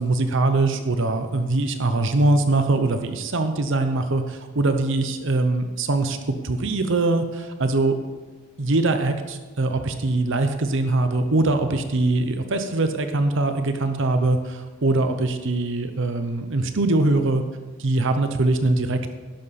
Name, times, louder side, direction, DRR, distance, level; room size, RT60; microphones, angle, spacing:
voice 1, 0.0-6.2 6.4-8.0 8.6-17.4 17.8-19.1, right 2 dB, 60° right, 8 dB, 0.8 m, -22 dB
12.0 x 11.5 x 4.2 m, 1.3 s
head